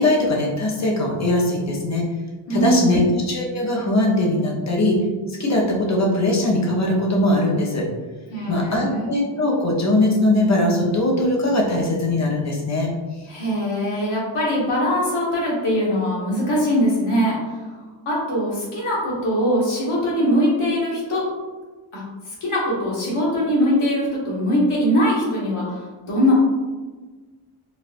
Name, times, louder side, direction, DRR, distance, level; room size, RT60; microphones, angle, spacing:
voice 1, 0.0-2.1 2.5-5.0 5.4-7.9 8.5-12.9, left 1 dB, 35° left, -1 dB, 0.7 m, -20 dB
voice 2, 2.5-3.0 8.3-9.1 13.3-17.3 18.0-21.2 21.9-22.0 22.4-26.3, equal, 85° left, -6 dB, 1.4 m, -21 dB
4.2 x 2.3 x 2.5 m, 1.3 s
wide cardioid pair, 140°, 50 cm